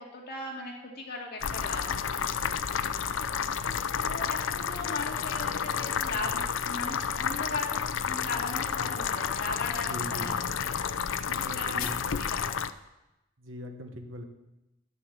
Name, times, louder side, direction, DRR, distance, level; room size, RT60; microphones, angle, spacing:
voice 1, 0.0-3.8 4.1-10.7 11.2-12.5, left 2 dB, 55° left, -1 dB, 2.4 m, -39 dB
sound 1, 1.4-12.7, left 7 dB, 75° left, 0.5 m, -31 dB
voice 2, 9.8-10.3 10.6-10.7 11.3-12.2 13.4-14.2, equal, 85° right, 6 dB, 1.3 m, -41 dB
11.0 x 6.9 x 7.3 m, 0.95 s
head